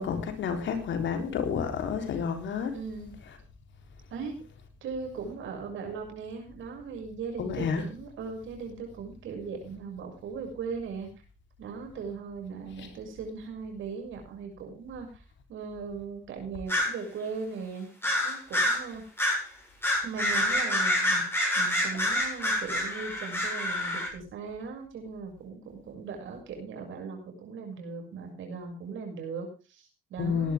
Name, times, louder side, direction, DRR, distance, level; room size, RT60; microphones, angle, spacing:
voice 1, 0.0-2.8 7.4-7.8 12.8-12.9 30.2-30.5, left 6 dB, 70° left, 3.8 m, -30 dB
voice 2, 2.7-3.2 4.1-4.4 4.8-11.1 11.6-15.2 15.5-17.9 18.2-19.0 20.0-21.2 21.5-30.5, right 5 dB, 80° right, 6.7 m, -38 dB
sound 1, 16.7-16.9 18.0-18.8 19.2-19.4 19.8-24.1, left 1 dB, 10° left, 7.2 m, -27 dB
18.0 x 12.0 x 3.6 m
cardioid pair, 90°, 20 cm